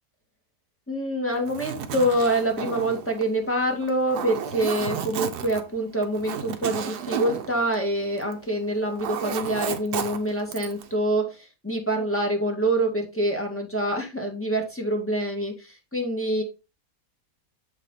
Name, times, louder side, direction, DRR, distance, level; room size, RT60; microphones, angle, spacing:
voice 1, 0.9-16.4, right 1 dB, 10° left, 1 dB, 1.8 m, -26 dB
Zipper (clothing), 1.3-8.5 8.7-10.9, right 8 dB, 75° right, 1.4 m, -33 dB
7.3 x 5.1 x 3.9 m, 0.27 s
omnidirectional pair, 1.7 m